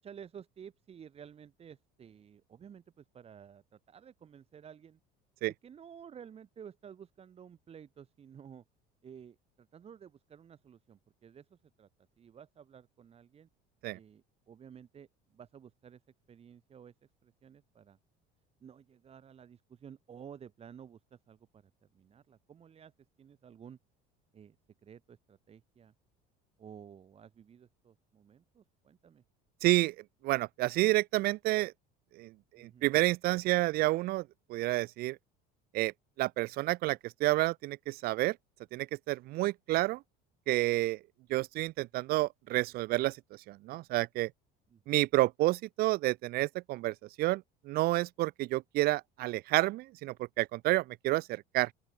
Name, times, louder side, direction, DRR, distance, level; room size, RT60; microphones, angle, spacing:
voice 1, 0.0-5.0 5.6-8.6 9.0-11.9 12.2-13.5 13.9-16.0 16.3-16.9 17.2-18.0 18.6-22.9 23.2-23.8 24.3-24.6 24.8-25.9 26.6-29.2 32.5-32.9 44.7-45.0, right 8 dB, 30° right, 7.1 m, -53 dB
voice 2, 29.6-29.9 30.2-31.7 32.1-35.2 35.7-35.9 36.2-38.4 38.7-40.0 40.5-41.0 41.3-43.2 43.5-44.3 44.9-51.7, right 18 dB, 50° right, 0.5 m, -30 dB
open air
cardioid pair, 150°, 20 cm